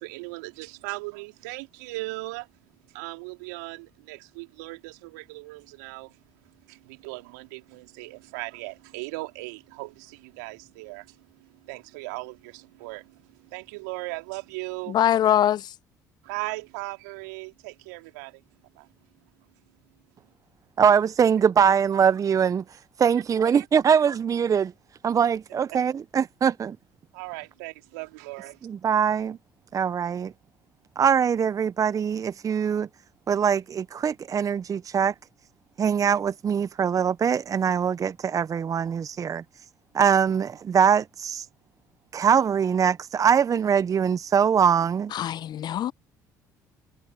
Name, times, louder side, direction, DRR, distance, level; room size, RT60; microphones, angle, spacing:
voice 1, 0.0-2.5 2.9-6.2 6.6-15.0 16.2-18.4 18.7-18.9 23.5-23.9 27.1-28.6, right 24 dB, 80° right, 2.9 m, -38 dB
voice 2, 14.9-15.7 45.1-45.9, left 11 dB, 50° left, 0.6 m, -23 dB
voice 3, 20.8-22.6 23.0-24.7 25.0-26.8 28.6-29.4 29.7-30.3 31.0-32.9 33.3-35.1 35.8-39.4 39.9-41.4 42.1-45.1, right 7 dB, 40° right, 0.8 m, -22 dB
hypercardioid pair, 55°, 9 cm